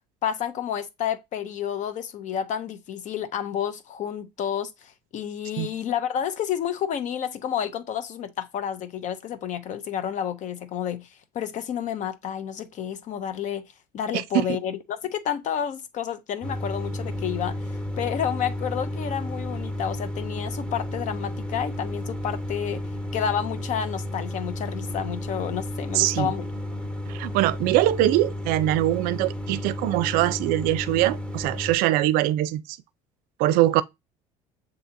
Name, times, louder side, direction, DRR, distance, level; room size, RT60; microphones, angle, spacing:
voice 1, 0.2-11.1 11.3-13.7 13.9-22.8 23.1-26.5, left 9 dB, 50° left, 0.7 m, -30 dB
sound 1, 16.4-31.8, left 1 dB, 5° left, 1.1 m, -32 dB
voice 2, 25.9-26.3 27.1-32.6 33.4-33.8, right 15 dB, 65° right, 0.4 m, -22 dB
6.7 x 2.8 x 2.6 m
supercardioid pair, 85°, 16 cm